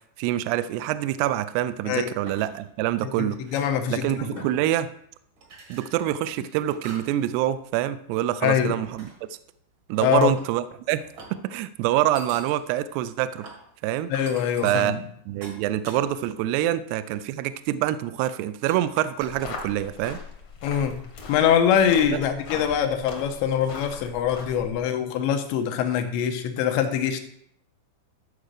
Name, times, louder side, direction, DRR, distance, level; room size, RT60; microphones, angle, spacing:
voice 1, 0.2-3.4 3.9-4.9 5.7-9.1 9.9-11.0 11.3-13.5 13.8-14.1 14.6-15.0 15.3-20.2 22.1-22.2, right 13 dB, 85° right, 13 dB, 2.4 m, -26 dB
sound 1, 1.9-2.8 3.2-4.0 4.4-5.0 5.4-7.3 7.7-8.0 8.8-9.5 9.9-10.5 11.0-11.4 11.9-16.4 16.8-17.0 17.4-17.5 18.3-18.4 18.7-20.0, right 3 dB, 55° right, 1.4 m, -46 dB
voice 2, 3.0-4.4 8.4-8.8 10.0-10.3 14.1-15.0 20.6-21.0 21.3-27.2, left 9 dB, 90° left, 6 dB, 3.2 m, -23 dB
sound 2, 19.2-24.8, left 4 dB, 60° left, 1.5 m, -40 dB
13.0 x 4.9 x 6.6 m, 0.69 s
omnidirectional pair, 5.2 m